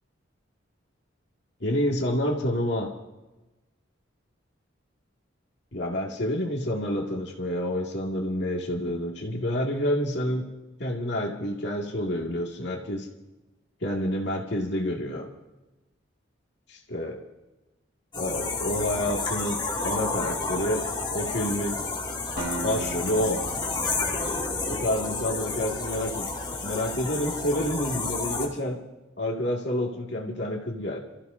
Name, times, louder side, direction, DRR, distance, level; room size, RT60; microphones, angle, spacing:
voice 1, 1.6-2.9 5.7-10.4 10.8-13.1 13.8-15.3 16.7-17.2 18.2-20.8 21.1-21.8 22.6-23.4 24.6-26.3 26.6-28.8 29.2-31.0, left 1 dB, 60° left, -1 dB, 2.1 m, -28 dB
sound 1, 18.1-28.5, left 3 dB, 25° left, 2.3 m, -31 dB
Acoustic guitar, 22.4-25.4, right 2 dB, 50° right, 3.1 m, -38 dB
28.5 x 14.5 x 2.7 m, 1.1 s
head